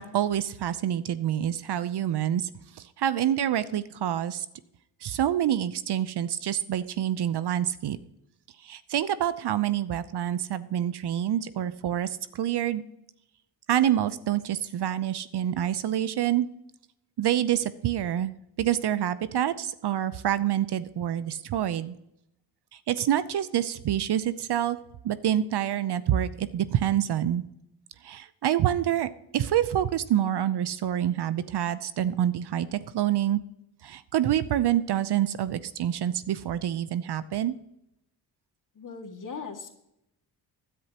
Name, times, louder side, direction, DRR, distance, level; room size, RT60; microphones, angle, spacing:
voice 1, 0.0-2.5 2.8-4.5 5.0-8.0 8.6-12.8 13.7-16.5 17.2-18.3 18.6-22.0 22.9-24.8 25.0-27.4 28.0-33.4 33.8-37.6, right 11 dB, 55° right, 15 dB, 0.8 m, -27 dB
voice 2, 38.8-39.7, left 5 dB, 40° left, 3 dB, 2.2 m, -39 dB
16.0 x 10.0 x 3.0 m, 0.81 s
supercardioid pair, 55°, 48 cm